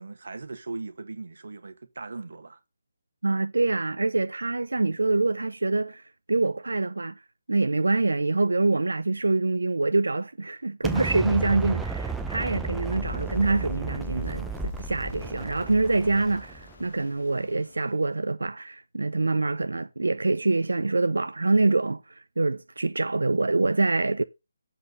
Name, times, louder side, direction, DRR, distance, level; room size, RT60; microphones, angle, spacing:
voice 1, 0.0-2.6, right 3 dB, 70° right, 1.4 m, -38 dB
voice 2, 3.2-7.1 7.5-24.2, right 3 dB, 90° right, 0.5 m, -25 dB
Explosion, 10.8-16.8, right 4 dB, 5° right, 0.6 m, -33 dB
sound 1, 12.5-18.3, left 3 dB, 75° left, 1.3 m, -50 dB
7.6 x 4.0 x 6.7 m
figure-of-eight pair, 160°, 0 cm